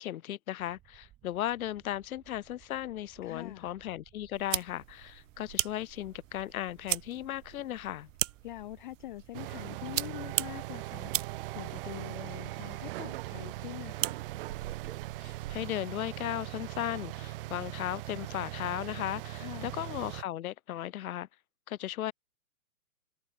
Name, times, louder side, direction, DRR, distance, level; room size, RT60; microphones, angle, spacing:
voice 1, 0.0-8.1 15.2-21.3 21.7-22.1, left 13 dB, 75° left, 0.6 m, -36 dB
sound 1, 0.6-15.0, right 14 dB, 25° right, 3.5 m, -60 dB
voice 2, 3.2-3.7 8.4-11.3 11.5-14.2 19.3-19.8, left 16 dB, 35° left, 0.5 m, -44 dB
sound 2, 4.3-15.8, right 13 dB, 65° right, 0.7 m, -39 dB
sound 3, 9.3-20.2, right 18 dB, 40° right, 0.9 m, -40 dB
hypercardioid pair, 130°, 42 cm